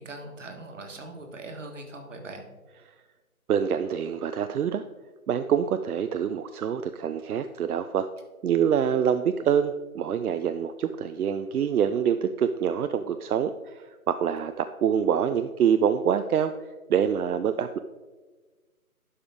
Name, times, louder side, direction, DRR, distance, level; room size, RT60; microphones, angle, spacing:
voice 1, 0.0-2.4, right 2 dB, 55° right, 4 dB, 1.5 m, -41 dB
voice 2, 3.5-4.8 5.3-8.1 8.4-16.5 16.9-17.8, right 8 dB, 80° right, 10 dB, 0.5 m, -25 dB
11.5 x 5.1 x 3.5 m, 1.3 s
hypercardioid pair, 175°, 44 cm